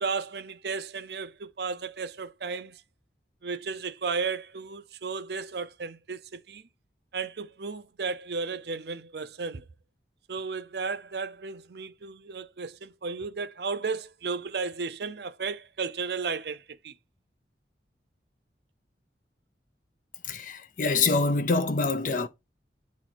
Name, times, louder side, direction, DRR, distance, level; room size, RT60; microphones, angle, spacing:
voice 1, 0.0-2.8 3.4-6.6 7.1-9.6 10.3-16.9, right 4 dB, 65° right, 0.6 m, -34 dB
voice 2, 20.2-22.3, left 3 dB, 50° left, 0.6 m, -25 dB
8.9 x 3.1 x 4.1 m
head